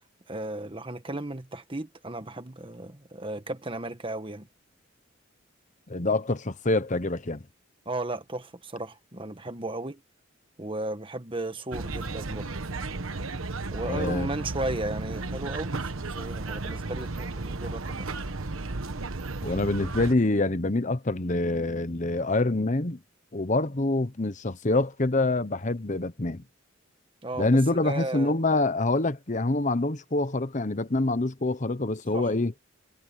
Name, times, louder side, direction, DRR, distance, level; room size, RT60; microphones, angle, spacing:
voice 1, 0.3-4.5 7.8-10.0 10.6-12.6 13.7-18.1 27.2-28.4 32.1-32.3, right 2 dB, 25° right, 1.5 m, -35 dB
voice 2, 5.9-7.4 13.8-14.3 19.4-23.0 23.3-26.4 27.3-32.5, left 2 dB, 40° left, 1.0 m, -26 dB
sound 1, 11.7-20.1, right 3 dB, 90° right, 1.3 m, -34 dB
head